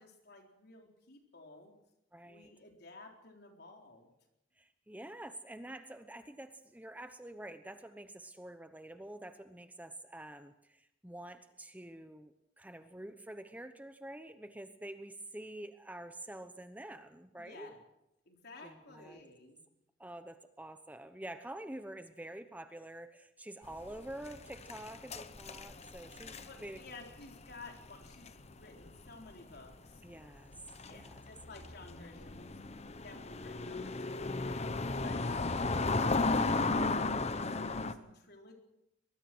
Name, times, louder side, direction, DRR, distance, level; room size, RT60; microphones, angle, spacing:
voice 1, 0.0-1.7 2.3-4.1 17.4-17.8 18.3-19.6 26.5-30.0 30.9-32.6 33.0-34.6 35.0-38.6, left 3 dB, 60° left, 2 dB, 4.1 m, -53 dB
voice 2, 2.1-2.5 4.6-17.7 18.6-19.2 20.0-26.8 30.0-30.6 30.9-31.2, right 1 dB, 10° right, 9 dB, 0.9 m, -47 dB
sound 1, 23.7-29.3 29.6-29.8 30.5-37.9, left 3 dB, 35° left, 1.0 m, -35 dB
23.0 x 21.0 x 6.2 m, 0.87 s
head